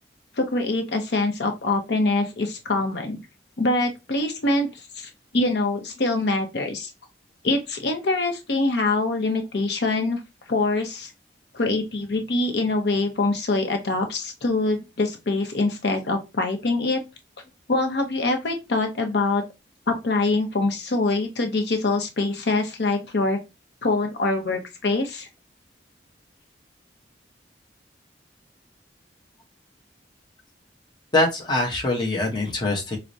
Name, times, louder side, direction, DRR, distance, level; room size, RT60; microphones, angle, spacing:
voice 1, 0.4-3.2 3.6-4.7 5.0-6.9 7.4-10.2 10.5-11.1 11.5-17.0 17.7-19.4 19.9-23.4 23.8-25.3, left 2 dB, 70° left, 4 dB, 0.6 m, -24 dB
voice 2, 31.1-33.0, left 2 dB, 25° left, -1 dB, 0.8 m, -23 dB
4.6 x 2.1 x 2.6 m, 0.24 s
head